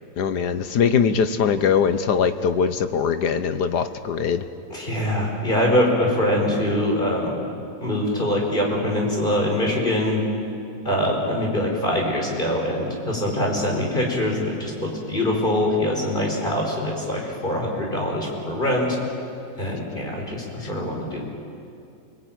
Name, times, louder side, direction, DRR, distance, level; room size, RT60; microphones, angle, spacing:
voice 1, 0.2-4.4, left 6 dB, 65° left, 10 dB, 1.6 m, -21 dB
voice 2, 4.7-7.4 7.8-10.2 10.8-19.0 19.6-21.2, left 1 dB, 25° left, -1 dB, 5.2 m, -23 dB
29.5 x 20.0 x 9.2 m, 2.6 s
omnidirectional pair, 1.9 m